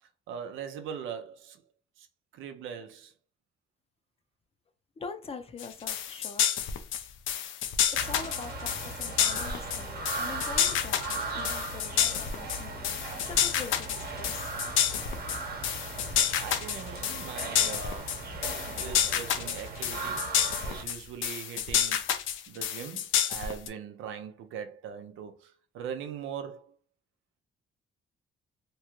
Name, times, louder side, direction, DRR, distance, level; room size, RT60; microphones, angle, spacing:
voice 1, 0.0-1.6 2.0-2.1 2.3-3.1 16.4-18.3 18.7-20.3 20.7-26.7, right 7 dB, 85° right, 0.5 m, -41 dB
voice 2, 5.0-6.5 7.9-13.0 13.3-14.5, left 4 dB, 30° left, 0.5 m, -43 dB
sound 1, 5.6-23.7, left 9 dB, 80° left, 0.4 m, -29 dB
sound 2, 7.9-20.8, right 3 dB, 50° right, 0.9 m, -38 dB
2.9 x 2.3 x 2.9 m
cardioid pair, 90°, 20 cm